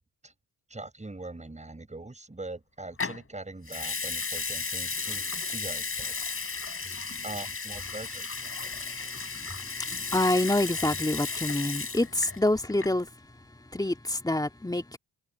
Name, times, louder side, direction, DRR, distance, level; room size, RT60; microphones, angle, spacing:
voice 1, 0.7-6.1 6.8-7.0 7.2-8.7, right 2 dB, 15° right, 7.4 m, -42 dB
Water tap faucet / Sink (filling or washing) / Liquid, 3.0-3.2 3.7-12.4 12.7-13.0, left 4 dB, 35° left, 7.2 m, -34 dB
voice 2, 8.5-13.1 13.7-15.0, left 1 dB, 10° left, 2.5 m, -28 dB
cardioid pair, 75°, 40 cm